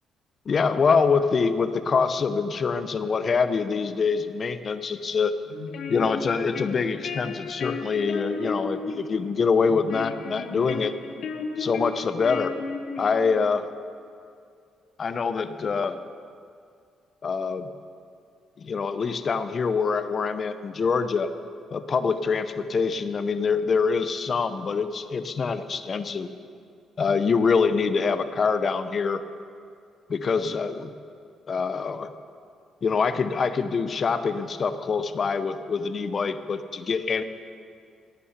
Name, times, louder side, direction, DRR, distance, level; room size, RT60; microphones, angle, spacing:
voice 1, 0.5-5.3 5.9-10.9 11.6-12.5 13.0-13.6 15.0-16.0 17.2-17.7 18.6-21.3 21.7-26.3 27.0-29.2 30.1-30.9 31.5-32.1 32.8-37.2, left 5 dB, 45° left, 11 dB, 0.8 m, -25 dB
sound 1, 5.5-13.5, left 4 dB, 65° left, 1.0 m, -35 dB
11.5 x 9.8 x 8.1 m, 2.3 s
cardioid pair, 90°, 0 cm